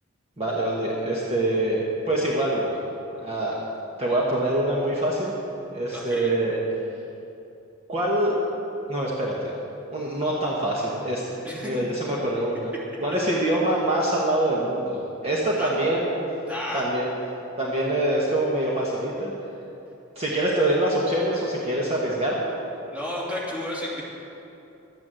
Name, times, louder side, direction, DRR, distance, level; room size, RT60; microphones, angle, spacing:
voice 1, 0.4-1.8 2.1-2.7 3.2-3.6 4.0-5.3 5.7-6.6 7.9-8.4 8.9-9.5 9.9-11.2 11.6-12.7 13.0-16.3 16.7-17.2 17.6-19.3 20.1-22.6, right 1 dB, 30° right, -4 dB, 1.4 m, -25 dB
voice 2, 5.9-6.3 11.4-11.8 15.6-15.7 16.5-16.8 22.9-24.0, left 1 dB, 5° right, -5 dB, 2.6 m, -32 dB
12.0 x 9.5 x 7.8 m, 2.9 s
head